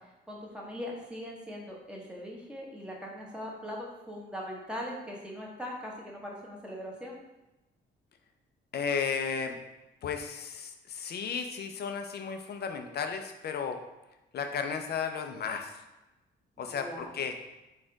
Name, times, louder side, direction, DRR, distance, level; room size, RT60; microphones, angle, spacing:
voice 1, 0.3-7.2 16.6-17.2, equal, 5° right, -3 dB, 1.1 m, -40 dB
voice 2, 8.7-9.6 10.0-13.8 14.3-15.8 16.6-17.3, left 6 dB, 55° left, 6 dB, 0.6 m, -34 dB
4.3 x 2.5 x 4.5 m, 0.99 s
cardioid pair, 90°, 20 cm